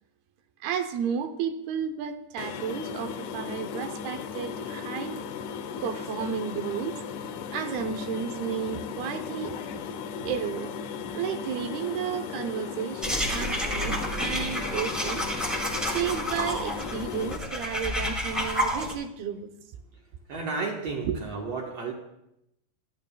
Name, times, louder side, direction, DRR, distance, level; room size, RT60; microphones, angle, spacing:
voice 1, 0.6-5.2 5.8-7.0 7.5-9.6 10.2-10.7 11.1-15.2 15.7-19.5 21.1-21.2, right 7 dB, 85° right, 7 dB, 2.8 m, -32 dB
sound 1, 2.4-17.4, left 6 dB, 80° left, 1.8 m, -36 dB
sound 2, 13.0-18.9, equal, ahead, 0.9 m, -30 dB
voice 2, 20.3-21.9, right 4 dB, 60° right, 0 dB, 1.8 m, -32 dB
24.0 x 13.0 x 2.3 m, 0.83 s
omnidirectional pair, 4.4 m